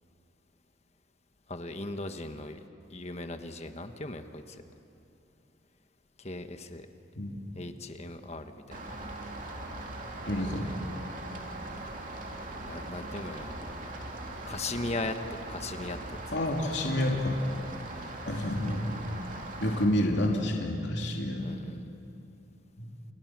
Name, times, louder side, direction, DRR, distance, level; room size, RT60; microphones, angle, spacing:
voice 1, 1.5-2.6 2.9-4.6 6.2-6.9 7.5-9.0 12.6-13.7 14.4-16.2 18.0-18.1 21.4-21.9, left 2 dB, 35° left, 7 dB, 1.3 m, -38 dB
Rain, 8.7-19.8, right 2 dB, 40° right, 2.9 m, -40 dB
voice 2, 10.2-10.6 16.3-17.4 18.2-18.9 19.6-21.5 22.8-22.9, left 1 dB, 60° left, 0 dB, 2.9 m, -29 dB
29.5 x 29.0 x 6.1 m, 2.8 s
head